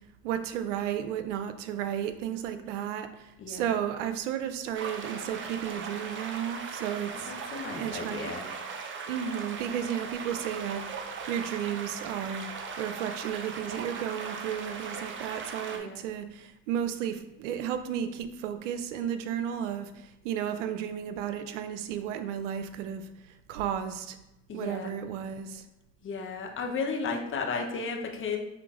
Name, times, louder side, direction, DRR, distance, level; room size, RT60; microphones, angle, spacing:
voice 1, 0.2-7.3 7.7-8.4 9.1-12.5 12.8-23.0 23.5-24.2 24.5-25.6, right 9 dB, 90° right, 9 dB, 0.5 m, -33 dB
voice 2, 3.4-3.7 6.8-8.5 15.7-16.0 24.5-24.9 26.0-28.4, left 4 dB, 35° left, 2 dB, 0.9 m, -34 dB
sound 1, 4.7-15.8, right 5 dB, 35° right, 0.5 m, -39 dB
5.8 x 3.3 x 2.5 m, 0.90 s
supercardioid pair, 80°, 35 cm